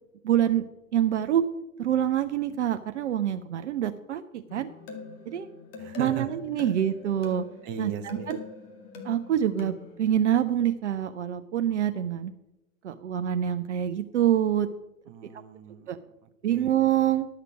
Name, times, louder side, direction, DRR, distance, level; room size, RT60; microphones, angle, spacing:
voice 1, 0.2-0.7 0.9-1.4 1.8-4.7 5.3-5.5 6.0-7.4 7.8-8.4 9.0-12.3 12.8-14.7 15.9-16.0 16.4-17.3, right 10 dB, 60° right, 9 dB, 0.6 m, -26 dB
sound 1, 4.5-10.0, left 4 dB, 45° left, 2.1 m, -43 dB
voice 2, 5.8-6.3 6.6-6.7 7.6-8.4 15.1-16.7, right 8 dB, 30° right, 10 dB, 0.8 m, -39 dB
11.5 x 6.7 x 6.0 m, 0.95 s
figure-of-eight pair, 100°, 41 cm